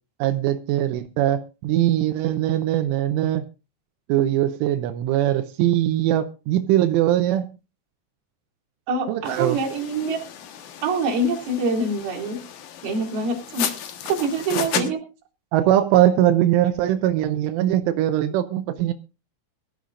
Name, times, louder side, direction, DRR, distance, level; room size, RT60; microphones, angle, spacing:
voice 1, 0.2-3.4 4.1-7.5 9.1-9.6 14.8-14.9 15.5-18.9, right 12 dB, 90° right, 3.3 m, -21 dB
voice 2, 8.9-10.2 10.8-12.4 12.8-13.7 14.1-15.0, right 2 dB, 55° right, 4.4 m, -25 dB
sound 1, 9.2-14.9, left 9 dB, 65° left, 2.4 m, -33 dB
22.5 x 13.0 x 2.5 m
omnidirectional pair, 5.5 m